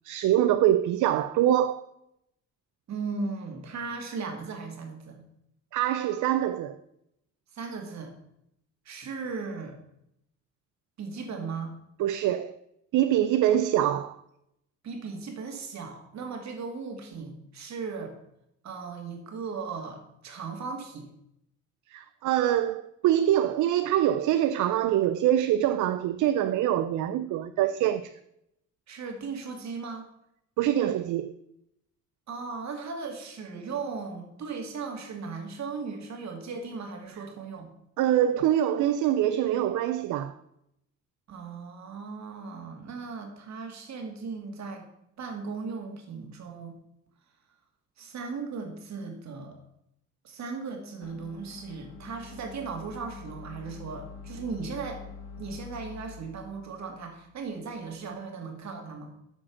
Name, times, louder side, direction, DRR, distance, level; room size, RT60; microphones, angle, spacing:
voice 1, 0.0-1.8 5.7-6.8 12.0-12.6 12.9-14.2 21.9-28.1 30.6-31.3 38.0-40.3, right 11 dB, 80° right, 0.5 m, -24 dB
voice 2, 2.9-5.2 7.5-8.1 8.9-9.8 11.0-11.7 14.8-18.1 18.6-21.1 28.9-30.1 32.3-37.7 41.3-44.8 45.2-46.7 48.0-49.7 50.2-55.0 55.4-59.1, right 4 dB, 65° right, 2.3 m, -37 dB
sound 1, 51.0-58.1, left 5 dB, 85° left, 1.8 m, -46 dB
8.5 x 5.3 x 7.0 m
cardioid pair, 90°, 30 cm